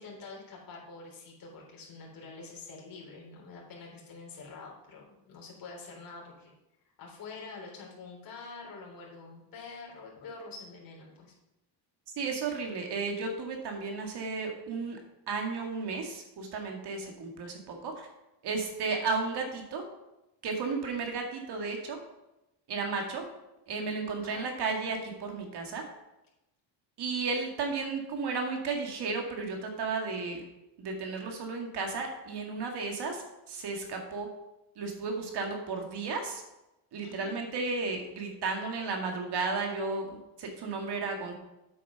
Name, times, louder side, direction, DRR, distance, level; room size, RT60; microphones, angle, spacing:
voice 1, 0.0-6.5 7.0-11.3 24.2-24.5 37.0-37.4, left 4 dB, 45° left, -2 dB, 3.7 m, -46 dB
voice 2, 12.2-15.0 15.3-18.1 18.4-19.8 20.4-22.0 22.7-23.2 23.7-25.8 27.0-30.4 30.8-34.3 34.8-36.4 36.9-41.4, right 4 dB, 55° right, 3 dB, 2.2 m, -33 dB
8.5 x 7.5 x 5.7 m, 0.93 s
cardioid pair, 125°, 47 cm